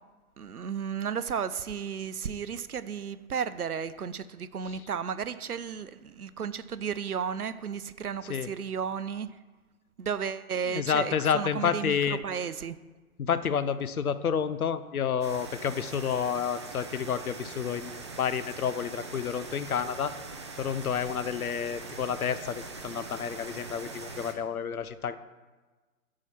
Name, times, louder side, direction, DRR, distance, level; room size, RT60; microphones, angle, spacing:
voice 1, 0.4-9.3 10.0-12.0 12.2-12.8, right 7 dB, 85° right, 15 dB, 0.6 m, -33 dB
voice 2, 10.7-12.2 13.2-20.1 20.6-25.2, left 7 dB, 75° left, 13 dB, 0.7 m, -30 dB
sound 1, 15.2-24.3, right 3 dB, 20° right, 0.5 m, -42 dB
10.5 x 4.9 x 5.7 m, 1.3 s
figure-of-eight pair, 125°, 44 cm